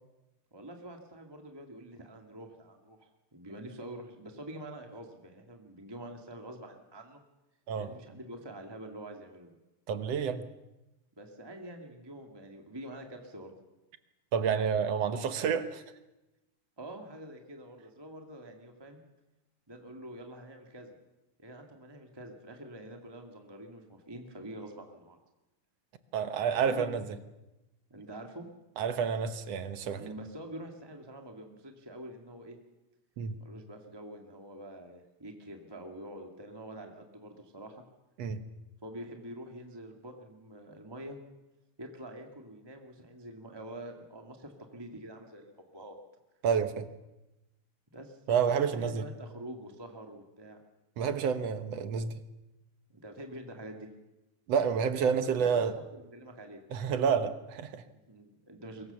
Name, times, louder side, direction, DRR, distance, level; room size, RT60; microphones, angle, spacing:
voice 1, 0.5-7.2 7.8-9.5 11.2-13.5 16.8-19.0 19.7-21.0 21.4-25.2 26.6-26.9 27.9-28.5 30.0-32.6 33.4-37.8 38.8-41.2 41.8-46.0 47.9-48.2 48.5-50.6 52.9-53.9 54.9-56.6 57.9-58.9, right 1 dB, 10° right, 3 dB, 1.4 m, -46 dB
voice 2, 9.9-10.4 14.3-15.8 26.1-27.0 28.8-30.0 33.2-33.4 38.2-38.4 46.4-46.9 48.3-49.1 51.0-52.2 54.5-55.7 56.7-57.8, right 7 dB, 60° right, 10 dB, 1.9 m, -29 dB
24.0 x 22.0 x 7.0 m, 0.99 s
omnidirectional pair, 3.7 m